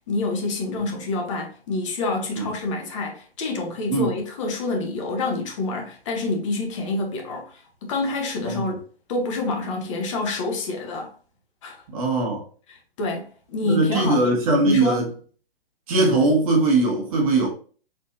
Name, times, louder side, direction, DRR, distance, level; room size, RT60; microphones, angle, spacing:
voice 1, 0.1-8.8 9.1-11.1 11.6-11.8 12.7-14.3 14.6-15.1, left 2 dB, 30° left, 0.9 m, -27 dB
voice 2, 11.9-12.4 13.6-15.1 15.9-17.5, right 2 dB, 35° right, 1.4 m, -20 dB
4.4 x 3.1 x 2.6 m
figure-of-eight pair, 130°, 30 cm